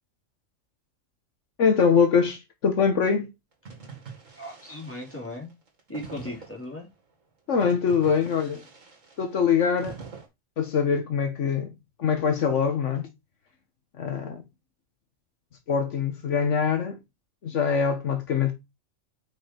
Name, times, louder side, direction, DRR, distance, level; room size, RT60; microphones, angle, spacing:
voice 1, 1.6-3.3 7.5-8.6 9.2-10.0 10.6-11.7 12.0-13.1 14.0-14.4 15.7-17.0 17.4-18.5, left 6 dB, 70° left, 1.4 m, -23 dB
sound 1, 3.6-6.9 7.6-10.3, right 5 dB, 85° right, 2.4 m, -45 dB
voice 2, 4.4-5.5 5.9-6.9, left 1 dB, 10° left, 2.9 m, -37 dB
5.6 x 5.4 x 4.4 m
omnidirectional pair, 1.3 m